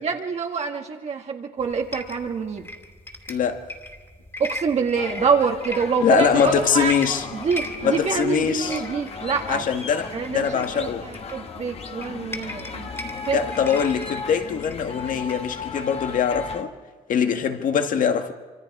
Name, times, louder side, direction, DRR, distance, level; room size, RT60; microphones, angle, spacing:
voice 1, 0.0-2.7 4.4-6.9 7.3-9.6 10.1-12.9 13.3-13.4, right 5 dB, 40° right, 1.7 m, -26 dB
sound 1, 1.6-15.7, left 1 dB, 15° left, 2.8 m, -39 dB
voice 2, 3.3-3.6 6.0-7.2 7.8-8.8 9.5-11.1 13.3-16.7 17.1-18.3, left 7 dB, 50° left, 1.7 m, -22 dB
sound 2, 5.0-16.6, left 4 dB, 35° left, 1.8 m, -36 dB
26.0 x 25.5 x 4.8 m
cardioid pair, 110°, 17 cm